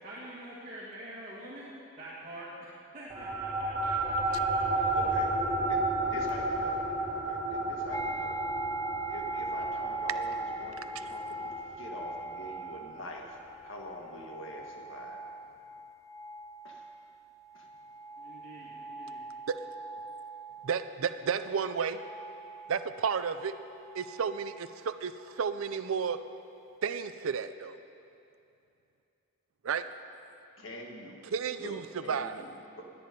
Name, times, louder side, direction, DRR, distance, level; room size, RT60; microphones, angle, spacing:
voice 1, 0.0-1.7 2.0-2.5 2.9-4.6 6.5-6.6 7.4-7.5 18.2-19.2, right 1 dB, 35° right, -8 dB, 2.2 m, -45 dB
sound 1, 3.1-13.9, right 2 dB, 20° right, 1.7 m, -32 dB
voice 2, 4.9-5.3 5.7-5.8 6.1-6.8 7.1-8.4 9.1-13.4 13.6-15.2 16.6-16.8 17.5-17.7 30.6-31.2 31.6-32.8, equal, 60° left, 1 dB, 1.7 m, -44 dB
sound 2, 7.9-20.9 21.3-22.9 23.3-24.7, right 2 dB, 15° left, 0.5 m, -41 dB
voice 3, 20.6-22.0 22.7-23.5 23.9-26.2 26.8-27.8 29.6-29.8 31.3-32.4, right 6 dB, 70° right, 11 dB, 0.5 m, -32 dB
19.5 x 8.6 x 5.2 m, 2.7 s
head